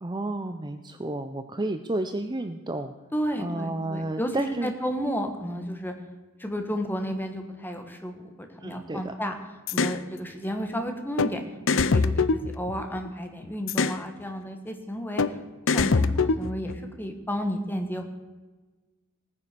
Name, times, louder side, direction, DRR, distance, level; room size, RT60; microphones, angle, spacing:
voice 1, 0.0-2.9 3.4-4.7 8.6-9.1, right 2 dB, 20° right, 8 dB, 0.6 m, -31 dB
voice 2, 3.1-5.9 6.4-9.4 9.7-11.4 11.7-12.2 12.5-15.2 15.7-18.1, equal, 10° left, 5 dB, 1.5 m, -32 dB
sound 1, 9.7-10.0 11.2-11.3 11.7-13.1 13.7-14.0 15.2-15.3 15.7-16.8, left 4 dB, 60° left, 0.6 m, -23 dB
17.5 x 9.7 x 6.8 m, 1.3 s
head